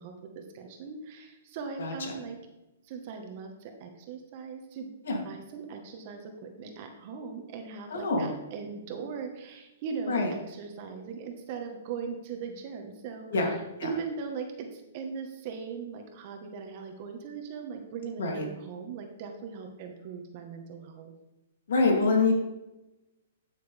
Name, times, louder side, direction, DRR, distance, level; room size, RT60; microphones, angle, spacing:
voice 1, 0.0-2.4 2.8-4.9 5.2-13.3 13.8-21.1, right 5 dB, 45° right, 4 dB, 1.4 m, -39 dB
voice 2, 1.8-2.1 5.0-5.2 7.9-8.3 10.1-10.3 13.3-13.5 13.8-13.9 18.2-18.4 21.7-22.3, left 3 dB, 75° left, 0 dB, 2.9 m, -25 dB
12.5 x 6.7 x 3.5 m, 0.99 s
hypercardioid pair, 135°, 0 cm